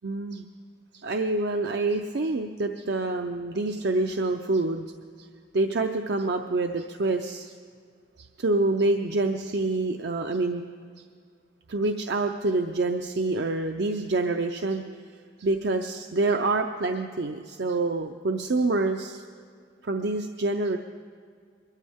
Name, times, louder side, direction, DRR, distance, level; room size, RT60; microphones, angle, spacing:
voice 1, 0.0-0.5 1.0-4.8 5.2-5.3 5.5-7.5 8.2-10.6 11.7-14.8 15.4-19.2 19.8-20.8, right 2 dB, 65° right, 5 dB, 0.6 m, -26 dB
22.5 x 14.0 x 3.6 m, 2.1 s
head